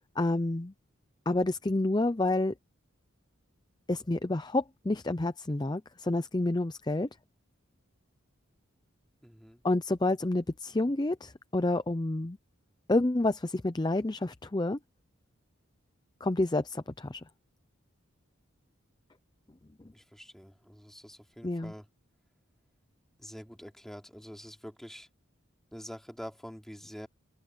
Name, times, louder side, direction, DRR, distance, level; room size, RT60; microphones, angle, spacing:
voice 1, 0.2-0.7 1.3-2.5 3.9-7.1 9.6-12.4 12.9-14.8 16.2-17.2 21.4-21.7, left 2 dB, 20° left, 0.5 m, -29 dB
voice 2, 9.2-9.6 19.9-21.9 23.2-25.1 25.7-27.1, equal, ahead, 3.1 m, -46 dB
head